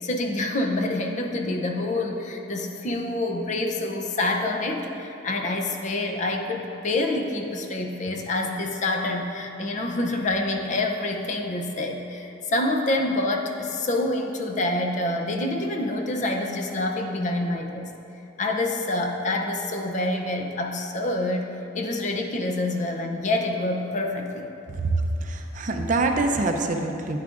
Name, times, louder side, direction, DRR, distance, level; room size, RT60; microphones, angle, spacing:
voice 1, 0.0-17.9 18.4-21.5 21.7-24.5, left 2 dB, 40° left, 3 dB, 0.6 m, -27 dB
voice 2, 24.8-27.2, right 2 dB, 40° right, 4 dB, 0.5 m, -25 dB
9.5 x 9.3 x 2.5 m, 2.8 s
head